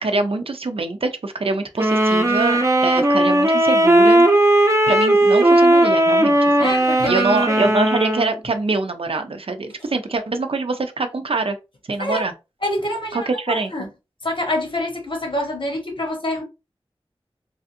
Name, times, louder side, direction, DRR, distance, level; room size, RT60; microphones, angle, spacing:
voice 1, 0.0-4.3 4.9-6.7 7.1-11.6 11.9-12.3 13.1-13.9, right 3 dB, 70° right, 0.5 m, -24 dB
sound 1, 1.8-8.3, right 1 dB, 30° right, 0.7 m, -16 dB
voice 2, 6.6-7.7 12.0-12.3 12.6-13.9 14.2-16.4, left 1 dB, 60° left, 1.1 m, -26 dB
3.4 x 2.5 x 2.6 m
wide cardioid pair, 50°, 10 cm